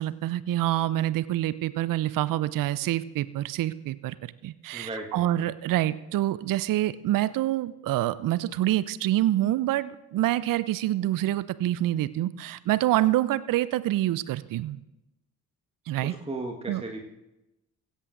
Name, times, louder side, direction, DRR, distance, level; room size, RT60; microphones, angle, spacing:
voice 1, 0.0-14.8 15.9-16.1 16.7-16.8, right 14 dB, 50° right, 17 dB, 0.6 m, -26 dB
voice 2, 4.7-5.5 16.0-17.0, right 2 dB, 15° right, 1 dB, 1.6 m, -36 dB
16.5 x 16.0 x 2.6 m, 0.95 s
figure-of-eight pair, 45°, 44 cm